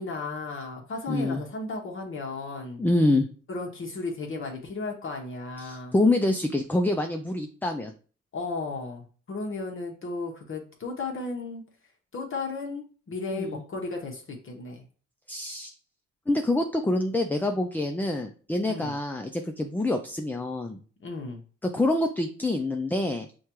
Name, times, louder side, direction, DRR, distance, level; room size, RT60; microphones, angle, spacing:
voice 1, 0.0-2.8 3.5-5.9 8.3-11.6 12.1-14.8 18.7-18.9 21.0-21.4, left 3 dB, 45° left, 1 dB, 0.9 m, -34 dB
voice 2, 1.1-1.4 2.8-3.3 5.6-7.9 13.3-13.6 15.3-15.7 16.3-20.8 21.6-23.3, left 2 dB, 5° left, 5 dB, 0.3 m, -26 dB
6.3 x 2.3 x 3.0 m, 0.40 s
cardioid pair, 90°, 30 cm